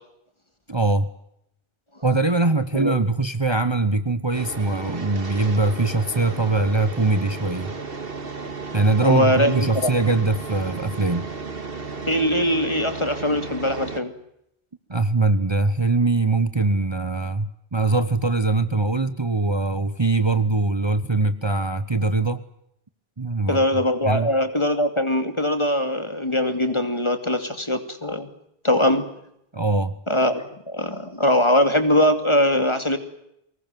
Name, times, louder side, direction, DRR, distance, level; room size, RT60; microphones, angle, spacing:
voice 1, 0.7-1.1 2.0-7.7 8.7-11.3 14.9-22.4 23.2-23.6 24.0-24.3 29.5-29.9, right 3 dB, 25° right, 11 dB, 1.1 m, -22 dB
sound 1, 4.3-14.0, right 4 dB, 65° right, 2.2 m, -34 dB
voice 2, 9.0-9.9 12.1-14.1 23.5-28.3 28.6-29.1 30.1-33.0, left 1 dB, 30° left, 8 dB, 2.6 m, -21 dB
24.0 x 20.5 x 9.1 m, 0.78 s
omnidirectional pair, 1.0 m